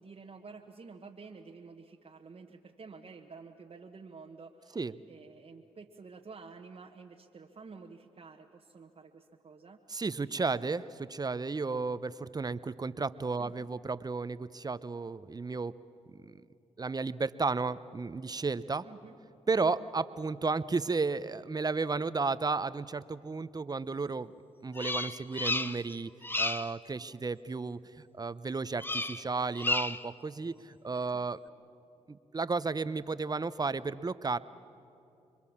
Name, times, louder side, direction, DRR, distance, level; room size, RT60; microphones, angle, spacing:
voice 1, 0.0-9.8 13.4-13.5 18.8-19.2 19.6-19.9 31.1-31.3, right 4 dB, 45° right, 1 dB, 1.3 m, -50 dB
voice 2, 9.9-15.7 16.1-16.2 16.8-18.8 19.5-24.3 24.6-26.1 26.4-27.8 28.1-31.4 32.1-34.4, right 4 dB, 30° right, 15 dB, 0.8 m, -33 dB
Bird vocalization bird call bird song, 24.8-25.9 26.2-26.7 28.8-29.2 29.5-30.1, left 2 dB, 15° left, 0.8 m, -32 dB
26.0 x 22.5 x 7.3 m, 2.7 s
supercardioid pair, 50°, 13 cm